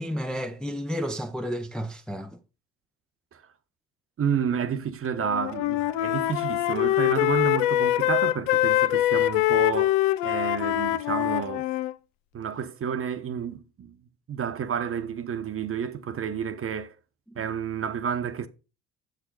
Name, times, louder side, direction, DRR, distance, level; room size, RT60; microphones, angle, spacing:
voice 1, 0.0-2.4 17.3-17.4, equal, ahead, 0.5 m, -32 dB
voice 2, 4.2-11.7 12.3-14.0 14.3-16.9 17.4-18.5, right 7 dB, 35° right, 0.9 m, -30 dB
Wind instrument woodwind instrument, 5.2-11.9, left 15 dB, 90° left, 0.5 m, -24 dB
6.6 x 6.6 x 3.8 m
supercardioid pair, 75°, 37 cm